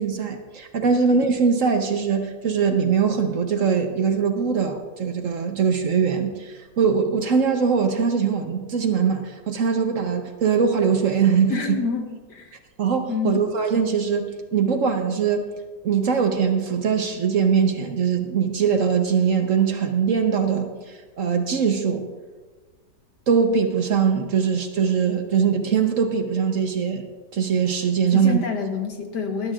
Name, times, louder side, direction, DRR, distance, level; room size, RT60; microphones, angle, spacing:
voice 1, 0.0-11.8 12.8-15.5 15.8-22.1 23.3-27.0 27.3-28.4, right 6 dB, 55° right, 5 dB, 1.1 m, -22 dB
voice 2, 11.5-12.6 13.1-13.4 28.1-29.5, left 6 dB, 75° left, 4 dB, 1.9 m, -27 dB
19.5 x 11.5 x 2.5 m, 1.4 s
omnidirectional pair, 1.8 m